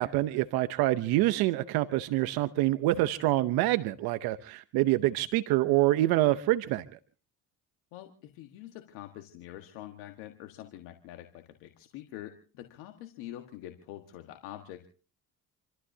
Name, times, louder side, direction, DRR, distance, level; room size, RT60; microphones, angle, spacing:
voice 1, 0.0-6.8, right 16 dB, 85° right, 12 dB, 0.8 m, -26 dB
voice 2, 7.9-14.9, left 13 dB, 90° left, 4 dB, 1.6 m, -45 dB
28.5 x 14.0 x 2.7 m, 0.37 s
supercardioid pair, 70°, 36 cm